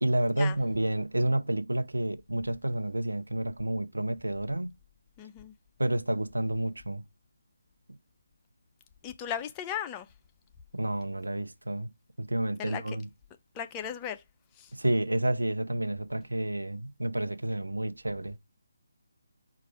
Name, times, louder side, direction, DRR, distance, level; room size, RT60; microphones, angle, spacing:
voice 1, 0.0-4.7 5.8-7.0 10.7-11.9 12.2-13.1 14.7-18.4, right 1 dB, 75° right, 0.5 m, -30 dB
voice 2, 5.2-5.5 9.0-10.1 12.6-13.0 13.5-14.2 14.6-14.7, left 9 dB, 15° left, 0.4 m, -36 dB
4.7 x 2.4 x 4.4 m
figure-of-eight pair, 150°, 0 cm